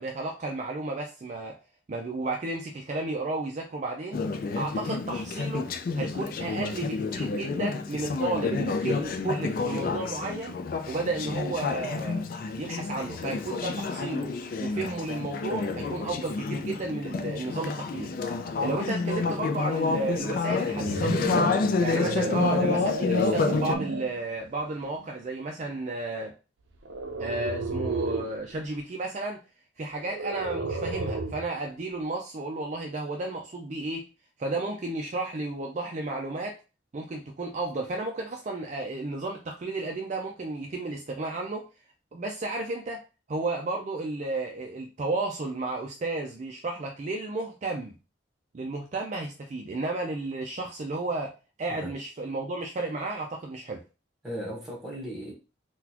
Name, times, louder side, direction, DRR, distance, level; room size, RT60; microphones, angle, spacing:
voice 1, 0.0-1.6 1.9-4.2 4.5-10.6 10.9-12.2 12.6-14.3 14.6-18.1 18.6-21.3 21.8-26.3 27.2-29.4 29.8-34.1 34.4-36.6 36.9-41.7 42.1-43.0 43.3-47.9 48.5-53.8, right 2 dB, 40° right, 0.4 m, -33 dB
Conversation / Chatter, 4.1-23.8, left 4 dB, 50° left, 0.3 m, -29 dB
sound 1, 20.5-24.2 24.8-25.1 26.9-28.4 30.1-31.5, right 2 dB, 90° right, 0.6 m, -32 dB
voice 2, 54.2-55.3, equal, ahead, 1.2 m, -37 dB
3.9 x 2.3 x 2.8 m
head